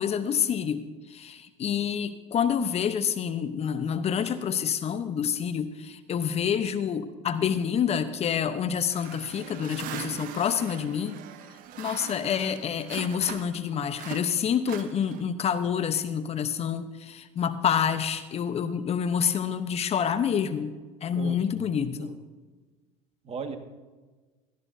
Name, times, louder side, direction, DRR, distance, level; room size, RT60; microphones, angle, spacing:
voice 1, 0.0-11.2 11.8-20.8 21.0-22.2, left 8 dB, 40° left, 11 dB, 0.9 m, -28 dB
sound 1, 8.9-13.6 13.9-15.4, right 11 dB, 60° right, 1.0 m, -41 dB
voice 2, 21.1-22.1 23.3-23.6, right 5 dB, 40° right, 6 dB, 1.8 m, -38 dB
18.0 x 13.5 x 2.7 m, 1.3 s
hypercardioid pair, 75°, 16 cm